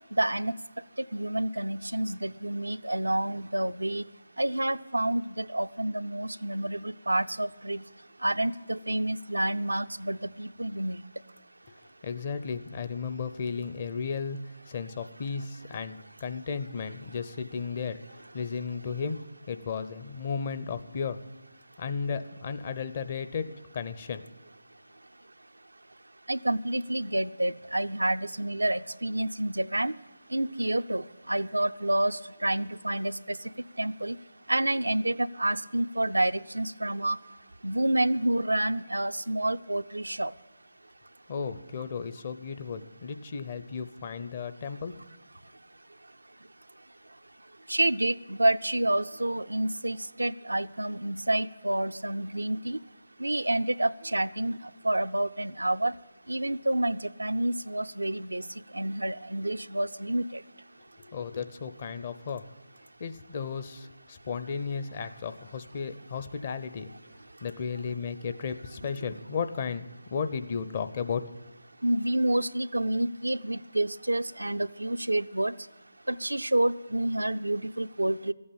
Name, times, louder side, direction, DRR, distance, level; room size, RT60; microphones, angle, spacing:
voice 1, 0.1-0.5 1.1-4.0 4.4-7.8 8.2-11.0 26.3-29.9 30.3-33.4 33.8-34.2 34.5-37.2 37.6-40.3 47.7-52.8 53.2-54.6 54.8-55.9 56.3-58.5 58.7-60.4 71.8-75.5 76.1-78.3, right 1 dB, 90° right, 11 dB, 0.5 m, -28 dB
voice 2, 12.0-21.2 21.8-24.3 41.3-44.9 61.0-62.4 63.0-66.9 67.4-71.2, left 5 dB, 40° left, 11 dB, 0.8 m, -34 dB
14.0 x 8.6 x 8.7 m, 1.2 s
figure-of-eight pair, 155°, 0 cm